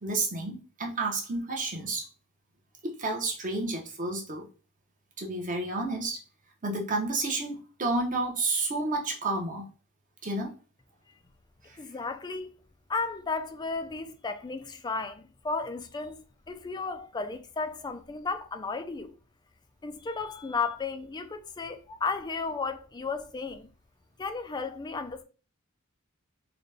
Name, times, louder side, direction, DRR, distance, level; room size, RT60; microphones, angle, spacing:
voice 1, 0.0-2.0 2.8-4.5 5.2-6.2 6.6-9.6 10.2-10.5 11.7-11.8, right 2 dB, 40° right, 0.9 m, -30 dB
voice 2, 11.8-12.5 12.9-16.2 16.5-19.2 19.8-23.7 24.2-25.2, left 4 dB, 20° left, 0.3 m, -34 dB
3.9 x 2.2 x 3.3 m
head